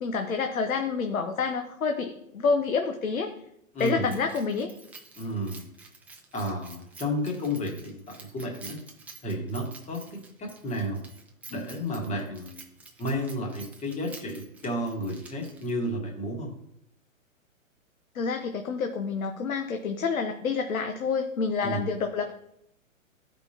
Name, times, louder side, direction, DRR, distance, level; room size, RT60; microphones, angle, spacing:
voice 1, 0.0-3.3 3.8-4.7 18.1-22.3, left 5 dB, 75° left, 5 dB, 1.0 m, -28 dB
voice 2, 3.7-4.1 5.1-5.6 6.3-8.8 9.2-11.1 11.5-12.6 13.0-16.5 21.6-21.8, equal, 15° left, 1 dB, 1.7 m, -32 dB
Keys jangling, 3.8-15.9, right 4 dB, 5° right, 0.5 m, -50 dB
13.5 x 5.2 x 2.9 m, 0.75 s
figure-of-eight pair, 120°, 41 cm